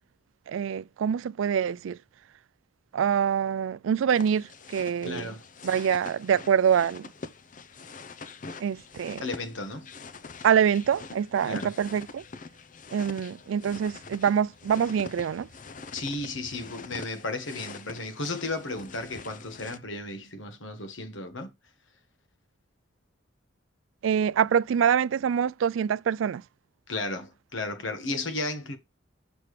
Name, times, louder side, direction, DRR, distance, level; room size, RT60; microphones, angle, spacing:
voice 1, 0.5-2.0 2.9-5.3 5.6-7.0 8.6-9.2 10.4-12.2 12.9-15.5 24.0-26.4, right 8 dB, 90° right, 0.3 m, -25 dB
sound 1, 4.1-19.8, left 4 dB, 45° left, 0.6 m, -45 dB
voice 2, 5.0-5.4 9.2-9.9 11.4-11.7 15.9-21.5 26.9-28.8, left 2 dB, 85° left, 1.5 m, -34 dB
6.7 x 5.9 x 3.2 m
head